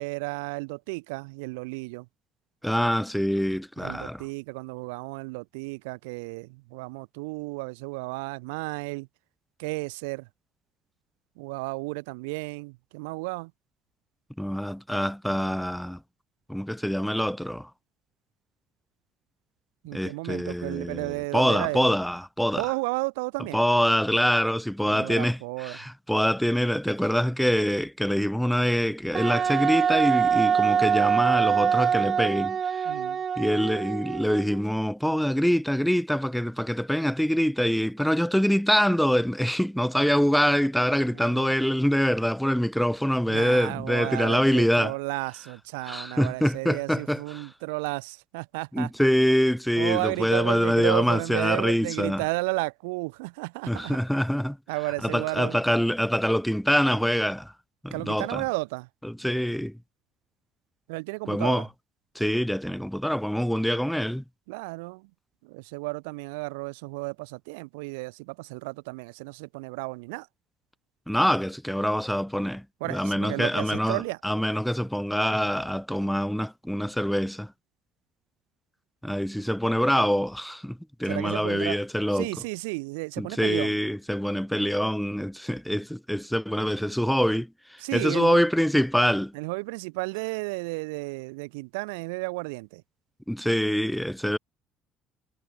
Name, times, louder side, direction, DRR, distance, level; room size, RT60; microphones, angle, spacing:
voice 1, 0.0-2.1 3.8-9.1 9.6-10.3 11.4-13.5 19.8-21.9 22.6-23.6 24.9-25.8 32.8-33.2 41.1-41.5 43.3-48.9 49.8-54.0 54.7-55.6 57.9-58.9 60.9-61.7 64.5-65.1 65.4-70.3 72.8-74.2 81.0-81.8 82.1-83.8 87.8-88.5 89.3-92.8, right 28 dB, 80° right, 5.6 m, -33 dB
voice 2, 2.6-4.2 14.4-16.0 16.5-17.7 19.9-22.6 23.5-32.9 33.4-44.9 45.9-47.5 48.7-52.2 53.7-54.6 55.0-57.5 57.8-58.4 59.0-59.8 61.3-61.7 62.2-64.2 71.1-72.7 72.9-77.5 79.0-82.3 83.2-89.3 93.3-94.4, equal, ahead, 3.3 m, -25 dB
Wind instrument woodwind instrument, 29.1-34.6, right 7 dB, 45° right, 0.6 m, -24 dB
hypercardioid pair, 65°, 0 cm